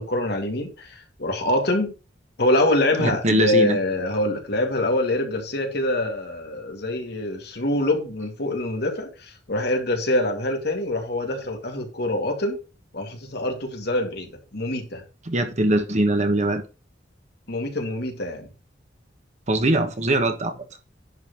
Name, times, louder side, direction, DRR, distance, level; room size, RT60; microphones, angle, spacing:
voice 1, 0.0-1.9 2.4-12.6 12.9-15.0 17.5-18.5, left 1 dB, 60° left, 2.4 m, -25 dB
voice 2, 3.0-3.8 15.3-16.6 19.5-20.5, right 1 dB, 40° right, 1.3 m, -21 dB
10.5 x 4.1 x 5.5 m
head